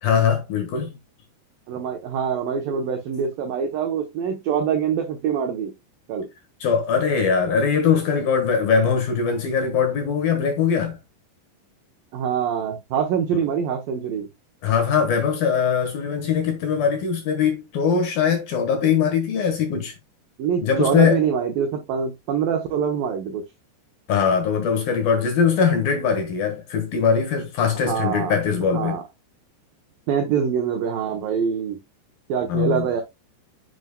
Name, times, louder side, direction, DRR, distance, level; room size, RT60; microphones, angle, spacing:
voice 1, 0.0-0.9 6.6-11.0 13.3-13.4 14.6-19.9 20.6-21.2 24.1-29.0 32.5-32.8, left 6 dB, 60° left, 2.8 m, -21 dB
voice 2, 1.7-5.7 6.1-6.3 12.1-14.3 20.4-23.4 27.8-28.4 28.7-29.0 30.1-31.8 32.3-33.0, right 7 dB, 80° right, 2.0 m, -24 dB
9.3 x 7.3 x 2.2 m
omnidirectional pair, 5.6 m